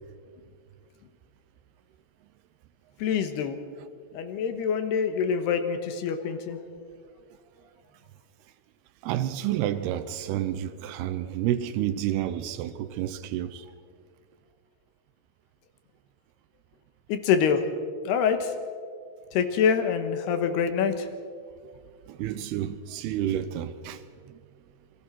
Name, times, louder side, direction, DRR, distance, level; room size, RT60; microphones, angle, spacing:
voice 1, 3.0-3.6 4.1-6.6 17.1-17.6 18.0-18.5 19.3-21.1, left 7 dB, 75° left, 3.2 m, -25 dB
voice 2, 9.0-13.7 22.1-24.4, right 11 dB, 80° right, 2.6 m, -30 dB
28.0 x 22.0 x 4.6 m
omnidirectional pair, 4.9 m